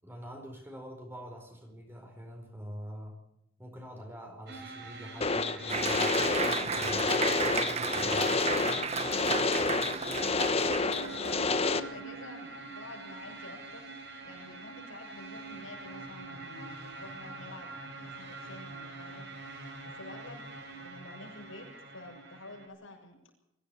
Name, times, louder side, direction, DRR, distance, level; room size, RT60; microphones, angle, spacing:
voice 1, 0.0-3.2 3.6-8.3, equal, 10° right, 3 dB, 4.7 m, -45 dB
sound 1, 4.5-22.7, right 3 dB, 55° right, 6.3 m, -45 dB
sound 2, 5.2-11.8, left 4 dB, 30° left, 1.2 m, -29 dB
Applause, 5.7-11.4, right 5 dB, 30° right, 1.3 m, -34 dB
voice 2, 10.8-13.8 14.2-19.3 19.8-23.2, left 2 dB, 75° left, 2 dB, 7.0 m, -48 dB
23.5 x 16.0 x 7.1 m, 0.82 s
head